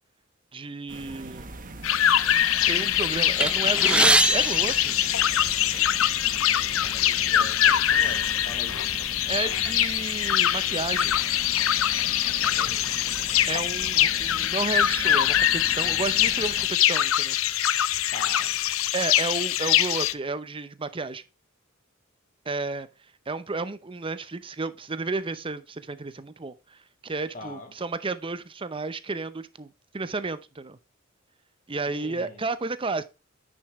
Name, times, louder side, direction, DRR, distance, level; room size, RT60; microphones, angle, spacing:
voice 1, 0.5-1.6 2.7-5.0 9.3-11.2 13.5-17.4 18.9-21.2 22.5-22.9 23.3-30.8 31.7-33.0, right 3 dB, 25° right, 0.7 m, -32 dB
sound 1, 0.9-16.7, right 2 dB, 40° right, 1.1 m, -42 dB
sound 2, 1.8-20.1, left 11 dB, 75° left, 0.6 m, -23 dB
sound 3, 3.4-5.7 6.6-6.7 7.0-7.2 8.0-8.2 8.7-9.9, right 2 dB, 5° right, 0.3 m, -25 dB
voice 2, 6.7-9.0 12.4-12.9 18.1-18.5 27.3-27.7 31.8-32.5, left 2 dB, 40° left, 2.1 m, -42 dB
9.6 x 6.4 x 3.1 m
head